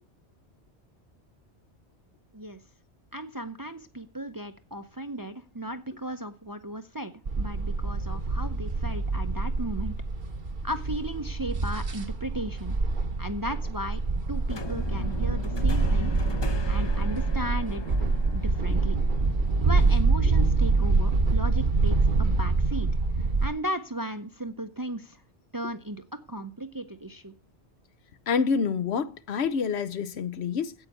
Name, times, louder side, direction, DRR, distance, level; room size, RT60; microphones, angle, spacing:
voice 1, 3.1-9.9 10.6-12.8 13.2-14.0 14.3-16.1 16.7-17.8 18.3-19.0 19.6-22.9 23.4-25.2 25.5-27.3, right 1 dB, 25° right, 0.6 m, -35 dB
sound 1, 7.3-23.5, right 3 dB, 45° right, 1.1 m, -26 dB
sound 2, 14.5-19.7, left 4 dB, 30° left, 0.5 m, -39 dB
voice 2, 28.3-30.7, left 5 dB, 70° left, 1.0 m, -27 dB
9.5 x 8.2 x 6.8 m
omnidirectional pair, 1.2 m